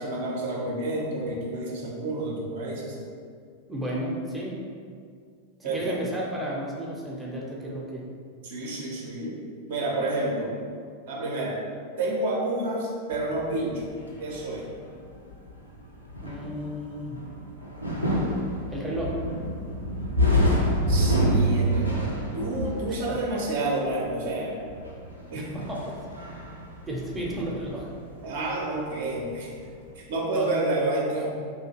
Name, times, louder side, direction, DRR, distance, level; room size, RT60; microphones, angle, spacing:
voice 1, 0.0-3.0 5.6-6.0 8.4-9.4 9.7-10.5 11.1-11.6 12.0-13.9 14.2-14.7 20.9-24.6 25.3-25.5 28.2-29.5 30.0-31.4, right 2 dB, 55° right, -3 dB, 0.5 m, -29 dB
voice 2, 3.7-4.6 5.6-8.1 16.2-17.2 18.7-19.2 23.1-23.2 25.3-25.9 26.9-27.9 30.4-30.5, equal, 10° right, -4 dB, 0.5 m, -33 dB
sound 1, 13.1-29.0 29.3-29.9, equal, 85° left, 0.4 m, -28 dB
2.8 x 2.4 x 2.7 m, 2.1 s
figure-of-eight pair, 90°, 0 cm